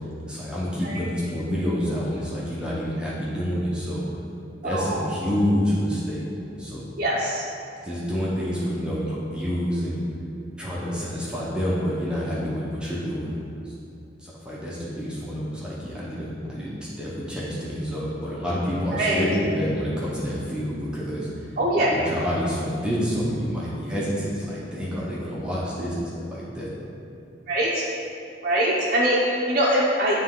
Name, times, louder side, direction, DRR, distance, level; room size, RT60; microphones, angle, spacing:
voice 1, 0.3-4.0 4.6-6.2 6.6-6.8 7.8-10.0 10.6-13.3 13.6-13.7 14.2-21.5 21.7-26.7, equal, 5° right, -8 dB, 0.9 m, -28 dB
voice 2, 4.6-5.0 7.0-7.4 18.9-19.2 21.6-21.9 27.5-27.8 28.4-30.2, right 1 dB, 45° right, -6 dB, 0.7 m, -22 dB
9.5 x 3.3 x 3.7 m, 2.7 s
head